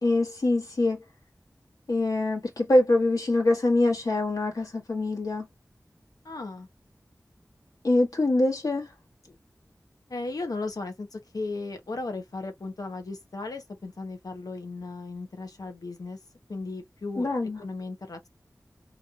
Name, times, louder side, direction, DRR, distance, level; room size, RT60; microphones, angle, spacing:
voice 1, 0.0-1.0 1.9-5.4 7.8-8.9 17.2-17.6, left 2 dB, 75° left, 1.5 m, -24 dB
voice 2, 6.2-6.7 10.1-16.2 16.5-17.3 17.6-18.3, left 3 dB, 90° left, 1.0 m, -36 dB
3.1 x 2.7 x 2.4 m
wide cardioid pair, 50°, 6 cm